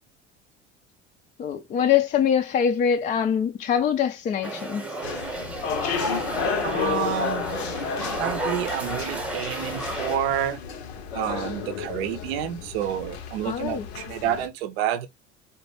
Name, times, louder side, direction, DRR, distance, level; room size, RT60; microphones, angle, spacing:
voice 1, 1.4-4.8 13.4-13.9, left 8 dB, 25° left, 0.3 m, -23 dB
sound 1, 4.4-10.2, right 1 dB, 5° right, 0.9 m, -32 dB
sound 2, 5.0-14.5, left 7 dB, 65° left, 0.7 m, -32 dB
voice 2, 6.6-7.4 8.2-10.6 11.1-15.1, right 11 dB, 60° right, 0.6 m, -29 dB
4.3 x 2.1 x 3.2 m
figure-of-eight pair, 60°, 34 cm